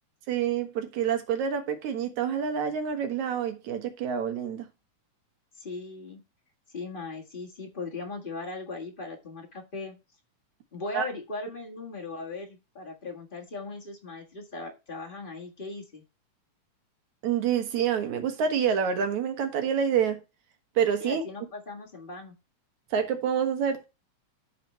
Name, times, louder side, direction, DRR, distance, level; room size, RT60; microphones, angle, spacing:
voice 1, 0.3-4.7 10.9-11.1 17.2-20.2 20.8-21.2 22.9-23.8, right 7 dB, 70° right, 2.7 m, -27 dB
voice 2, 5.6-6.2 6.7-10.0 10.7-16.0 21.0-22.3, left 2 dB, 25° left, 1.1 m, -38 dB
13.5 x 4.9 x 3.2 m
omnidirectional pair, 3.5 m